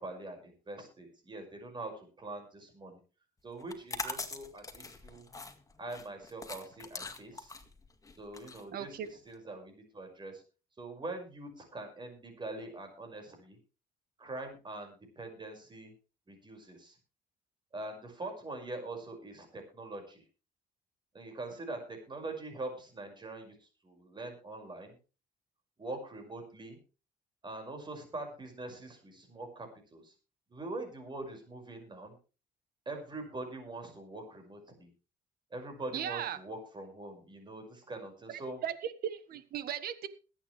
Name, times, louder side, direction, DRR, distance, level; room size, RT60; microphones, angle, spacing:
voice 1, 0.0-3.0 3.4-5.3 5.8-7.5 8.2-10.4 10.8-13.6 14.2-15.9 16.3-17.0 17.7-20.2 21.1-25.0 25.8-26.8 27.4-30.1 30.5-32.1 32.9-34.9 35.5-38.6, right 2 dB, 30° right, 5 dB, 5.8 m, -43 dB
sound 1, 3.6-9.3, left 3 dB, 20° left, 1.9 m, -43 dB
voice 2, 8.7-9.1 35.9-36.4 38.3-40.1, right 9 dB, 70° right, 12 dB, 1.6 m, -37 dB
21.5 x 9.3 x 3.3 m, 0.33 s
cardioid pair, 110°, 16 cm